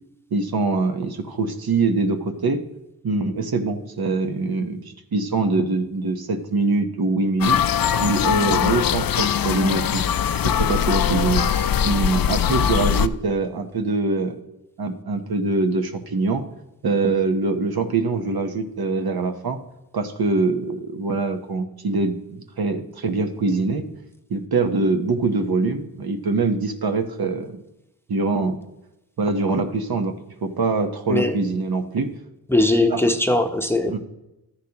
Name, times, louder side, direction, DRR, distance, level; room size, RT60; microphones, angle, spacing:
voice 1, 0.3-2.6 3.0-4.8 5.1-7.6 8.0-10.0 10.4-11.5 11.8-14.4 14.8-16.4 16.8-19.6 19.9-23.9 24.3-27.6 28.1-28.6 29.2-32.1 32.9-33.0 33.9-34.0, right 3 dB, 70° right, 6 dB, 1.0 m, -23 dB
sound 1, 7.4-13.1, left 8 dB, 65° left, 0.5 m, -21 dB
voice 2, 32.5-34.0, left 2 dB, 5° left, 6 dB, 0.8 m, -20 dB
13.0 x 10.0 x 2.9 m, 0.92 s
wide cardioid pair, 95°, 38 cm